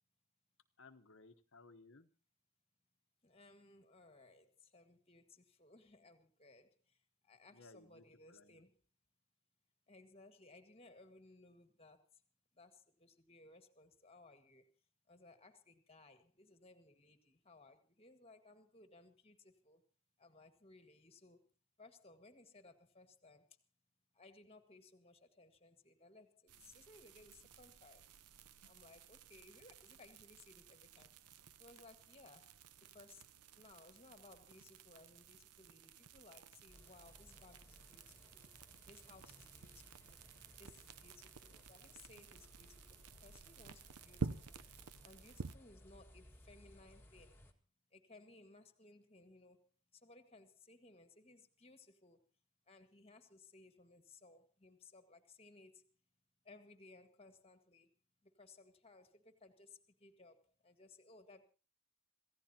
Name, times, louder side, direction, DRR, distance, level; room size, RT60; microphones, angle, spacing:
voice 1, 0.8-2.1 7.5-8.6, left 3 dB, 55° left, 1.1 m, -61 dB
voice 2, 3.2-8.8 9.9-12.1 12.5-14.6 15.1-19.8 20.2-21.5 21.8-23.5 24.1-28.1 28.6-31.1 31.6-32.6 32.9-33.3 33.6-38.5 38.9-40.2 40.6-47.4 47.9-49.6 49.9-52.2 52.7-55.9 56.4-57.9 58.2-61.4, left 3 dB, 25° left, 1.7 m, -62 dB
sound 1, 26.5-45.6, right 4 dB, 90° right, 0.8 m, -52 dB
sound 2, 36.7-47.5, left 1 dB, 10° left, 1.8 m, -62 dB
26.5 x 15.5 x 2.9 m
head